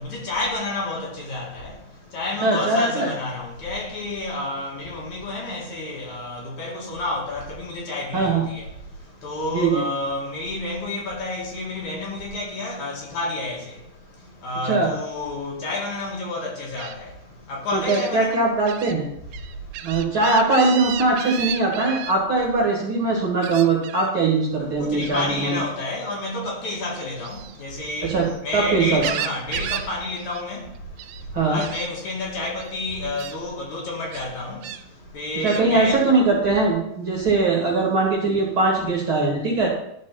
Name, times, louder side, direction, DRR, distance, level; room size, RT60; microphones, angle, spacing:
voice 1, 0.0-1.7 2.1-8.6 9.2-13.6 14.4-17.1 17.5-18.4 24.8-28.1 28.4-30.6 31.4-34.6 35.1-36.0, left 2 dB, 60° left, 3.1 m, -29 dB
voice 2, 2.4-3.1 8.1-8.5 9.5-9.8 14.6-14.9 17.7-19.1 19.8-25.6 28.0-28.3 28.5-29.0 31.3-31.6 35.4-39.7, right 3 dB, 45° right, 2.0 m, -21 dB
Gull seagull, 16.8-16.9 17.9-18.1 18.7-18.9 19.3-22.1 23.4-24.1 25.0-25.3 27.1-28.4 28.8-29.9 30.2-30.4 30.7-31.2 31.6-31.9 32.6-32.7 33.2-33.4 34.1-34.8 35.5-35.7, right 11 dB, 85° right, 2.3 m, -33 dB
12.0 x 4.6 x 5.8 m
omnidirectional pair, 4.0 m